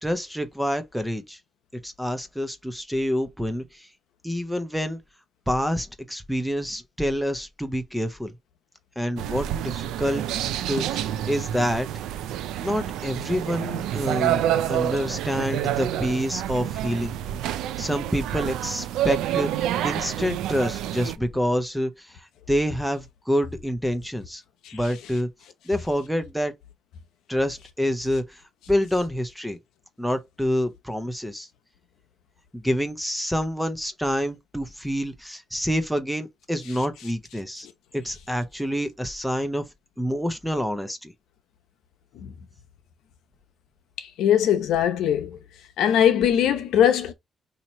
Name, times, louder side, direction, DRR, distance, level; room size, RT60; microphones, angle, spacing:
voice 1, 0.0-1.4 1.8-3.6 4.2-5.0 5.5-8.3 9.0-10.2 10.7-11.9 12.6-17.1 17.8-19.5 19.8-22.1 22.5-24.4 24.7-25.3 25.7-26.5 27.3-28.2 28.7-29.6 30.0-31.5 32.5-37.7 37.9-39.7 40.0-41.1, equal, ahead, 0.6 m, -27 dB
sound 1, 9.2-21.2, right 11 dB, 90° right, 0.3 m, -28 dB
voice 2, 44.0-45.4 45.8-47.1, left 9 dB, 85° left, 0.7 m, -21 dB
2.9 x 2.8 x 4.2 m
cardioid pair, 90°, 0 cm